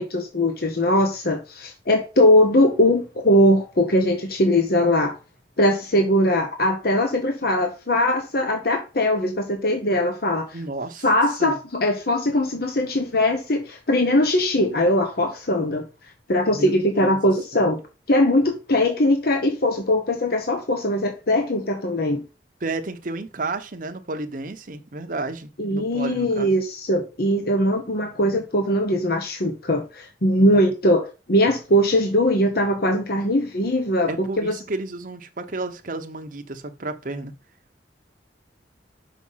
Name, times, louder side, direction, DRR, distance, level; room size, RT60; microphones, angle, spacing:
voice 1, 0.0-5.2 5.6-10.6 11.0-15.8 16.3-17.8 18.1-22.2 25.6-34.5, left 1 dB, 60° left, 1.2 m, -21 dB
voice 2, 10.5-11.1 11.4-11.5 16.5-16.7 17.0-17.2 17.5-17.6 22.6-26.5 30.4-30.7 34.1-37.4, right 2 dB, 50° right, 0.9 m, -32 dB
6.2 x 5.2 x 5.6 m
head